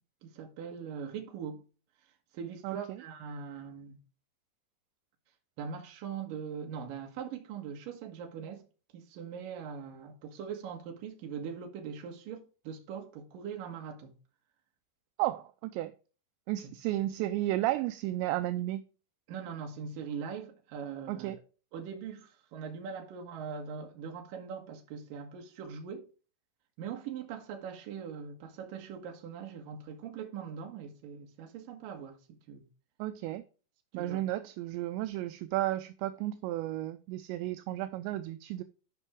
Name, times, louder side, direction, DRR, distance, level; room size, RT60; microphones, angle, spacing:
voice 1, 0.2-1.6 2.3-4.0 5.6-8.6 8.9-14.1 19.3-21.3 21.7-26.1 26.8-32.7 33.9-34.2, right 7 dB, 60° right, 2.7 m, -41 dB
voice 2, 2.6-3.0 15.2-15.9 16.5-18.8 21.1-21.4 33.0-33.4 33.9-38.6, right 15 dB, 85° right, 2.7 m, -33 dB
12.5 x 5.4 x 3.6 m
omnidirectional pair, 5.4 m